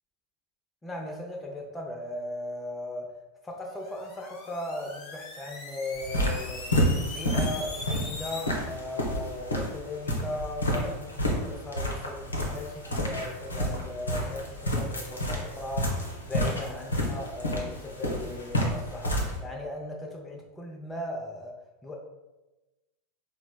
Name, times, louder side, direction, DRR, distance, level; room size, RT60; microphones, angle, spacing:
voice 1, 0.8-3.1 3.4-6.7 7.0-22.0, left 1 dB, 10° left, 0 dB, 0.5 m, -37 dB
sound 1, 3.7-8.5, left 3 dB, 40° left, 1.0 m, -41 dB
sound 2, 6.0-19.4, equal, 80° left, 0.6 m, -30 dB
4.1 x 2.0 x 2.2 m, 1.0 s
figure-of-eight pair, 85°, 0 cm